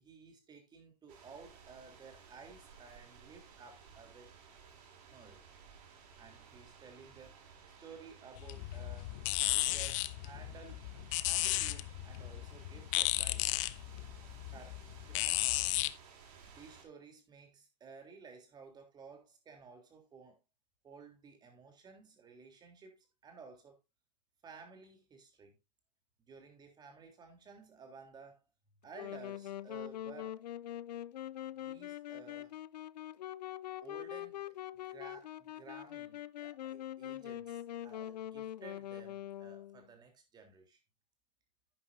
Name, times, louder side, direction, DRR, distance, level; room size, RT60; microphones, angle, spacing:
voice 1, 0.0-4.3 5.1-5.6 6.2-7.4 7.8-9.1 9.5-10.8 11.1-13.5 14.5-15.7 16.4-20.4 20.8-23.8 24.4-25.6 26.3-28.5 28.8-30.4 31.6-32.5 33.8-34.5 34.9-40.8, right 5 dB, 20° right, 3.4 m, -55 dB
sound 1, 1.1-16.8, right 6 dB, 60° right, 6.0 m, -57 dB
sound 2, 8.4-15.9, left 17 dB, 50° left, 0.8 m, -34 dB
Wind instrument woodwind instrument, 28.9-39.9, left 12 dB, 85° left, 0.5 m, -43 dB
11.5 x 9.6 x 2.7 m
hypercardioid pair, 135°, 20 cm